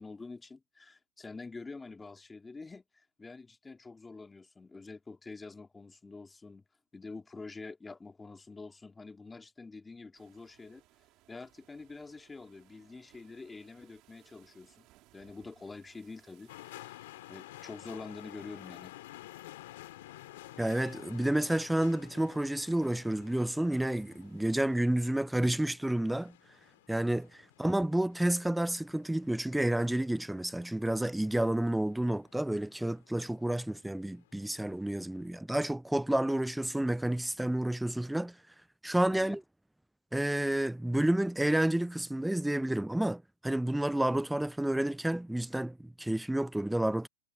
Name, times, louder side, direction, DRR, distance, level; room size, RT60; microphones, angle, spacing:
voice 1, 0.0-6.6 6.9-10.8 11.3-14.9 15.1-18.9 39.1-39.4, left 3 dB, 15° left, 2.2 m, -47 dB
sound 1, 10.1-24.8, right 18 dB, 50° right, 4.1 m, -66 dB
sound 2, 16.5-35.3, left 17 dB, 70° left, 3.2 m, -53 dB
voice 2, 20.6-26.3 26.9-38.4 38.8-39.4 40.1-47.1, right 1 dB, 5° right, 0.3 m, -30 dB
hypercardioid pair, 110°, 0 cm